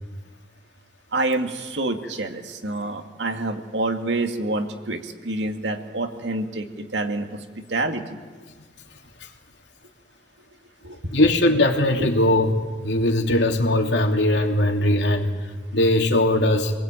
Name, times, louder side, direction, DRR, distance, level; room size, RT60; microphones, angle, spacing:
voice 1, 1.1-7.4 7.7-8.2 10.8-11.2 12.0-12.1, right 2 dB, 90° right, 5 dB, 2.3 m, -27 dB
voice 2, 11.1-12.5 12.8-15.3 15.7-16.7, left 1 dB, 85° left, 3 dB, 2.9 m, -20 dB
27.0 x 20.0 x 9.1 m, 1.4 s
head